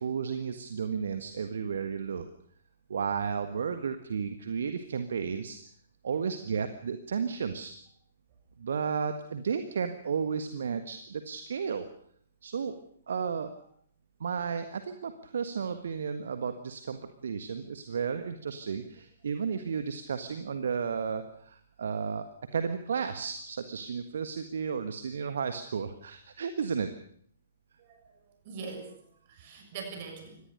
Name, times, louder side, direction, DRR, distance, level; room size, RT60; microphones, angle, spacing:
voice 1, 0.0-2.3 2.9-5.6 6.0-7.7 8.6-11.9 12.4-12.8 13.1-13.5 14.2-26.9, right 6 dB, 55° right, 9 dB, 1.6 m, -33 dB
voice 2, 27.8-29.0 29.3-30.4, right 5 dB, 40° right, 5 dB, 6.7 m, -43 dB
25.0 x 18.5 x 6.7 m, 0.63 s
figure-of-eight pair, 120°, 0 cm